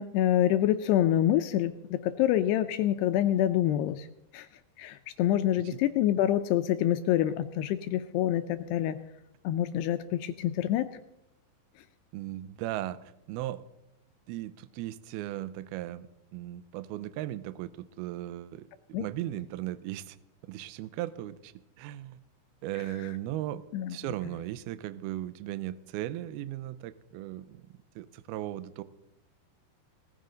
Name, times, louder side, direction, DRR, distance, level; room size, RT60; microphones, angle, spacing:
voice 1, 0.0-4.1 4.3-4.5 4.8-9.0 9.4-10.9 18.9-19.1 23.7-24.0, left 12 dB, 85° left, 10 dB, 2.4 m, -26 dB
voice 2, 12.1-13.0 13.3-13.6 14.3-20.2 20.4-21.5 21.8-22.2 22.6-23.6 23.9-27.7 28.0-28.8, right 14 dB, 85° right, 15 dB, 2.2 m, -37 dB
19.0 x 14.5 x 3.9 m, 0.84 s
omnidirectional pair, 5.4 m